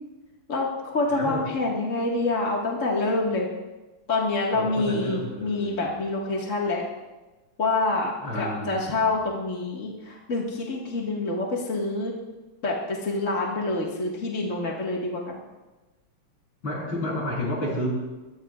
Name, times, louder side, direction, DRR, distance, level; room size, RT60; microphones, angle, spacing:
voice 1, 0.5-3.5 4.1-6.9 7.6-12.1 12.6-15.4, left 2 dB, 35° left, -3 dB, 2.0 m, -27 dB
voice 2, 1.1-1.4 4.5-5.9 8.2-9.1 16.6-18.1, left 1 dB, 65° left, -4 dB, 8.4 m, -31 dB
23.5 x 21.5 x 2.5 m, 1.1 s
omnidirectional pair, 2.3 m